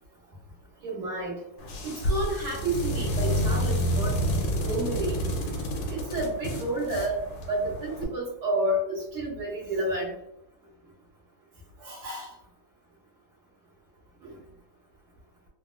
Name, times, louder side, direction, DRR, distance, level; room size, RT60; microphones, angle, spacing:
voice 1, 0.8-1.3 1.8-4.1 4.6-5.2 5.9-7.2 7.5-10.1 11.8-12.3 14.2-14.3, right 1 dB, 90° right, -7 dB, 1.7 m, -30 dB
sound 1, 1.6-8.0, equal, 75° left, 1.4 m, -29 dB
3.9 x 2.1 x 2.3 m, 0.85 s
omnidirectional pair, 2.3 m